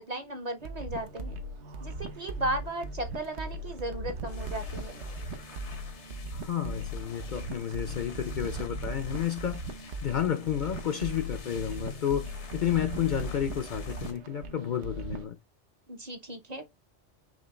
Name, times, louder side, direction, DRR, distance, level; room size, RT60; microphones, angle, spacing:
voice 1, 0.0-1.4 1.8-5.0 15.9-16.6, right 1 dB, 40° right, 0.8 m, -35 dB
sound 1, 0.6-15.3, right 1 dB, 80° right, 1.1 m, -38 dB
sound 2, 4.2-14.1, left 4 dB, 90° left, 1.4 m, -49 dB
voice 2, 6.3-9.6 10.0-15.4, left 9 dB, 55° left, 0.6 m, -31 dB
5.2 x 2.9 x 3.1 m
omnidirectional pair, 1.1 m